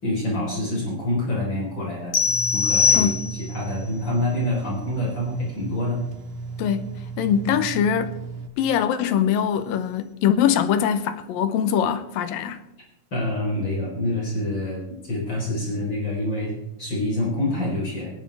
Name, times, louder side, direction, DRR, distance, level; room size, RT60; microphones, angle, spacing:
voice 1, 0.0-2.2 2.5-3.1 3.5-6.0 7.5-7.6 13.1-16.5 16.8-18.1, left 1 dB, 35° left, 4.6 m, -26 dB
sound 1, 2.1-3.7, left 6 dB, 60° left, 1.4 m, -21 dB
sound 2, 2.3-8.5, right 5 dB, 80° right, 3.0 m, -35 dB
voice 2, 6.6-6.9 7.2-8.2 8.6-12.6, left 8 dB, 85° left, 2.6 m, -22 dB
22.5 x 11.0 x 3.4 m
omnidirectional pair, 3.9 m